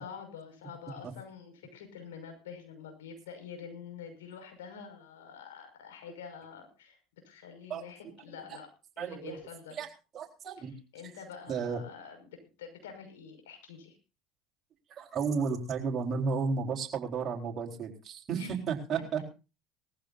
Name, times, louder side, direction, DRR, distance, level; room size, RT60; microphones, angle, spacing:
voice 1, 0.0-7.0 7.2-8.7 9.0-9.8 10.6-12.3 12.6-14.0 18.4-18.6, left 6 dB, 90° left, 5 dB, 5.8 m, -47 dB
voice 2, 9.0-9.4 9.8-9.9 10.1-10.7 11.5-11.8 15.0-19.3, right 5 dB, 40° right, 0 dB, 4.2 m, -33 dB
20.0 x 15.0 x 2.7 m, 0.32 s
hypercardioid pair, 85°, 0 cm